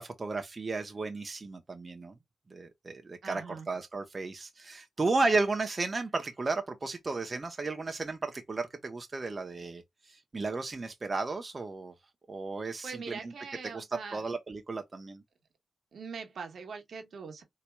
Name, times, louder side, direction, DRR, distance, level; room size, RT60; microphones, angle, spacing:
voice 1, 0.0-2.1 2.5-9.8 10.1-11.9 12.3-13.3 13.7-13.8 14.1-15.2, right 3 dB, 40° right, 0.8 m, -34 dB
voice 2, 3.2-3.7 12.8-14.2 15.9-17.4, right 5 dB, 70° right, 1.2 m, -42 dB
4.4 x 2.9 x 2.2 m
cardioid pair, 60°, 0 cm